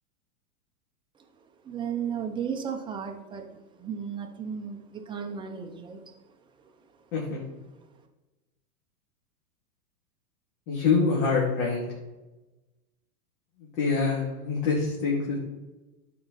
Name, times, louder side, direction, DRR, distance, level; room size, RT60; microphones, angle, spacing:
voice 1, 1.6-6.0, right 7 dB, 10° right, 3 dB, 0.6 m, -34 dB
voice 2, 10.7-11.8 13.6-15.4, left 4 dB, 55° left, -4 dB, 2.6 m, -25 dB
11.5 x 4.7 x 4.1 m, 1.1 s
hypercardioid pair, 135°, 46 cm